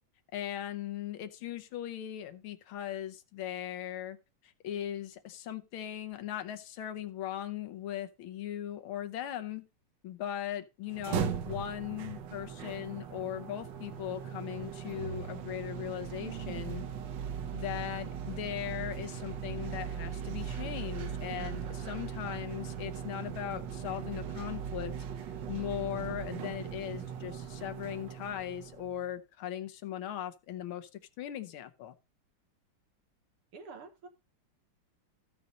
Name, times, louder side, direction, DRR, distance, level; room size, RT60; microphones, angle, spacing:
voice 1, 0.3-4.2 4.4-9.6 10.0-16.8 17.5-24.9 25.5-30.9 31.2-31.9, left 11 dB, 75° left, 1.6 m, -39 dB
sound 1, 10.9-29.0, right 8 dB, 65° right, 1.4 m, -39 dB
voice 2, 33.5-34.1, right 4 dB, 85° right, 2.4 m, -47 dB
14.0 x 5.4 x 4.0 m
omnidirectional pair, 2.4 m